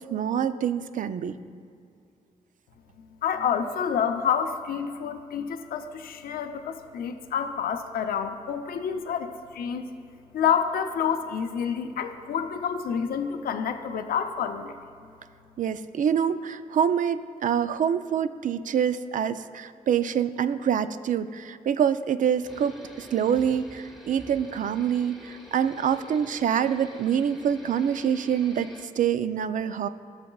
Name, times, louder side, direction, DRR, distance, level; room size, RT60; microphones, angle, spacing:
voice 1, 0.0-1.4 15.6-28.7 29.0-29.9, right 8 dB, 60° right, 12 dB, 0.4 m, -26 dB
voice 2, 3.2-9.9 10.3-14.7, left 7 dB, 75° left, 6 dB, 0.6 m, -28 dB
sound 1, 22.4-28.9, left 1 dB, ahead, 1.1 m, -47 dB
16.5 x 6.6 x 2.3 m, 2.4 s
cardioid pair, 70°, 15 cm